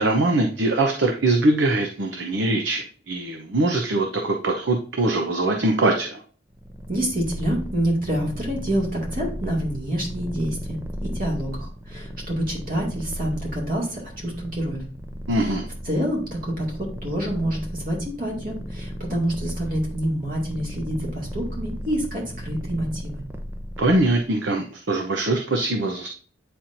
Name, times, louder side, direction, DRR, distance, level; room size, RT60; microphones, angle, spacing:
voice 1, 0.0-6.2 15.3-15.6 23.8-26.1, right 2 dB, 70° right, 3 dB, 0.7 m, -22 dB
Purr, 6.5-24.2, equal, 10° right, 0.6 m, -35 dB
voice 2, 6.9-14.8 15.3-15.5 15.8-23.2, right 1 dB, 50° right, -2 dB, 2.3 m, -27 dB
9.0 x 4.3 x 2.6 m, 0.43 s
head